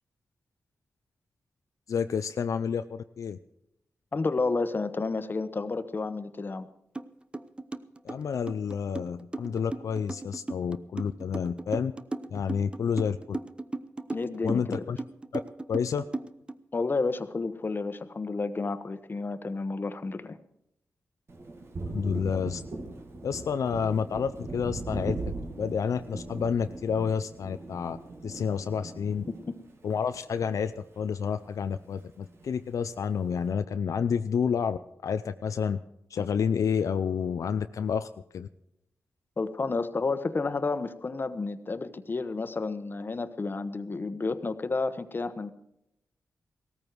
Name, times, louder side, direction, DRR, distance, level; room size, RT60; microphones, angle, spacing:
voice 1, 1.9-3.4 8.0-11.9 12.3-13.4 14.4-15.0 15.3-15.4 15.7-16.0 21.9-22.6 23.2-28.0 28.2-29.2 29.8-35.8 36.1-38.1 38.3-38.5, left 7 dB, 75° left, 9 dB, 0.5 m, -29 dB
voice 2, 4.1-6.7 14.1-14.9 16.7-20.4 29.3-29.5 39.4-45.5, left 3 dB, 40° left, 11 dB, 1.1 m, -31 dB
sound 1, 7.0-7.1 7.3-16.5, right 2 dB, 20° right, 0.7 m, -36 dB
Thunder, 21.3-31.1 31.4-32.5, right 2 dB, 50° right, 2.3 m, -40 dB
17.5 x 14.0 x 4.7 m, 0.78 s
wide cardioid pair, 85°, 6 cm